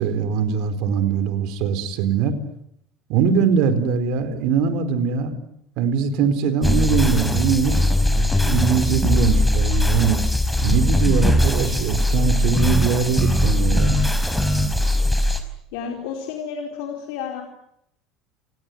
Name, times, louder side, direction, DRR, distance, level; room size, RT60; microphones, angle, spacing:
voice 1, 0.0-2.4 3.1-5.4 5.8-7.8 8.4-10.2 10.6-14.0, right 6 dB, 70° right, 11 dB, 4.4 m, -21 dB
sound 1, 6.6-15.4, left 1 dB, 5° left, 5.2 m, -20 dB
voice 2, 15.7-17.4, left 7 dB, 75° left, 2 dB, 4.6 m, -31 dB
29.5 x 19.0 x 9.4 m, 0.74 s
supercardioid pair, 90°, 0 cm